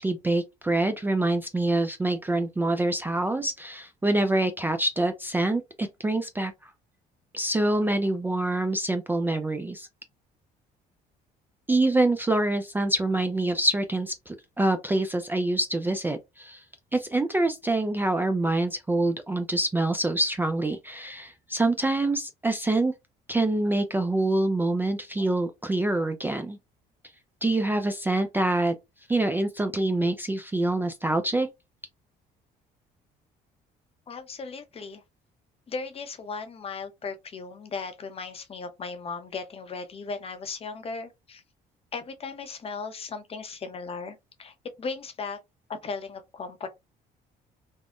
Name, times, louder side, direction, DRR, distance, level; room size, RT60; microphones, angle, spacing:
voice 1, 0.0-6.7 7.3-9.9 11.7-16.6 16.9-22.9 23.3-26.6 27.4-28.8 29.1-31.5, right 2 dB, 10° right, 0.3 m, -26 dB
voice 2, 34.1-35.0 35.7-41.4 41.9-45.4 45.7-46.7, left 4 dB, 35° left, 0.7 m, -37 dB
3.5 x 2.0 x 2.4 m
cardioid pair, 110°, 17 cm